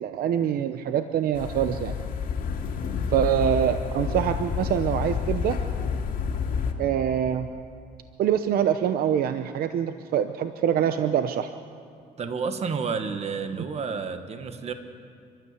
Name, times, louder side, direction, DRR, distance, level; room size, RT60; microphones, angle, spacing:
voice 1, 0.0-1.9 3.1-5.6 6.8-7.5 8.2-11.5, right 9 dB, 60° right, 9 dB, 0.8 m, -25 dB
sound 1, 1.3-6.7, left 6 dB, 55° left, 2.4 m, -29 dB
voice 2, 12.2-14.7, right 5 dB, 40° right, 8 dB, 1.6 m, -30 dB
28.5 x 12.5 x 8.3 m, 2.3 s
cardioid pair, 110°, 17 cm